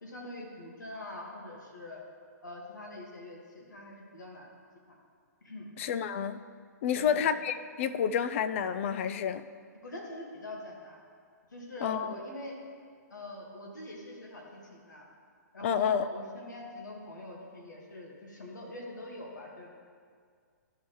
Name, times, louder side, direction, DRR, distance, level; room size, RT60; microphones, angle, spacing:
voice 1, 0.0-2.0 2.4-4.5 4.9-5.0 5.4-5.7 6.9-7.2 9.8-11.0 11.5-12.5 13.1-15.1 15.5-19.7, left 1 dB, 90° left, -1 dB, 1.8 m, -43 dB
voice 2, 5.8-6.4 6.8-9.4 11.8-12.1 15.6-16.0, left 8 dB, 45° left, 12 dB, 0.4 m, -29 dB
13.0 x 5.5 x 3.1 m, 2.1 s
hypercardioid pair, 135°, 10 cm